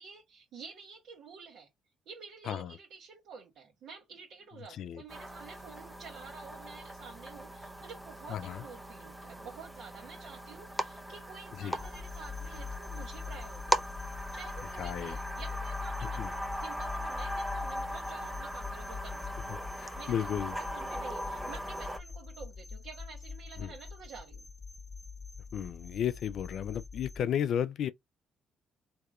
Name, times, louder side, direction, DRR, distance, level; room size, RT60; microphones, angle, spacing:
voice 1, 0.0-1.7 2.1-14.0 14.3-19.3 20.0-24.5, right 5 dB, 75° right, 1.1 m, -50 dB
voice 2, 2.5-2.8 4.7-5.0 8.3-8.6 11.6-11.8 14.8-15.2 16.2-16.3 19.8-20.5 23.6-23.7 25.5-27.9, left 9 dB, 70° left, 0.3 m, -33 dB
sound 1, 5.1-22.0, equal, 5° right, 0.5 m, -39 dB
sound 2, 11.8-27.2, left 5 dB, 15° left, 1.1 m, -43 dB
3.5 x 2.8 x 2.3 m
supercardioid pair, 70°, 0 cm